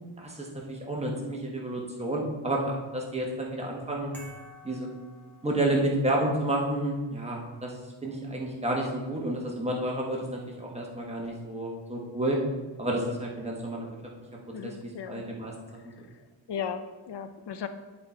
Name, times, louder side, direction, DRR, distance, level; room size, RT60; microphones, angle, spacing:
voice 1, 0.2-4.1 4.6-4.9 5.4-7.7 8.0-12.4 12.8-13.9 14.6-14.7 15.1-15.5, right 1 dB, 15° right, -2 dB, 1.2 m, -30 dB
sound 1, 4.1-6.0, left 1 dB, 5° left, 1.4 m, -50 dB
voice 2, 14.5-15.3 15.9-17.7, left 7 dB, 60° left, 9 dB, 0.6 m, -37 dB
10.0 x 4.3 x 4.4 m, 1.3 s
wide cardioid pair, 155°, 48 cm